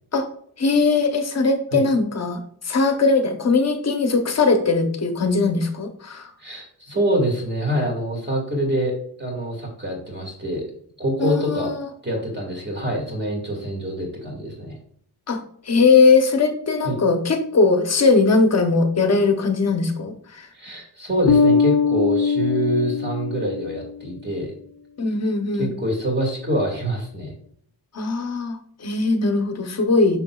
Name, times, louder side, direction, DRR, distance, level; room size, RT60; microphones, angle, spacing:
voice 1, 0.6-6.3 11.2-11.9 15.3-15.4 15.7-20.5 25.0-25.7 27.9-30.2, left 4 dB, 40° left, 6 dB, 0.8 m, -20 dB
voice 2, 6.4-8.9 9.2-10.6 11.0-11.7 12.0-14.8 16.8-17.0 20.5-24.5 25.6-27.3, equal, 25° right, 0 dB, 2.0 m, -25 dB
Bass guitar, 21.3-23.9, left 5 dB, 90° left, 0.5 m, -20 dB
6.9 x 5.8 x 2.3 m, 0.65 s
wide cardioid pair, 165°, 41 cm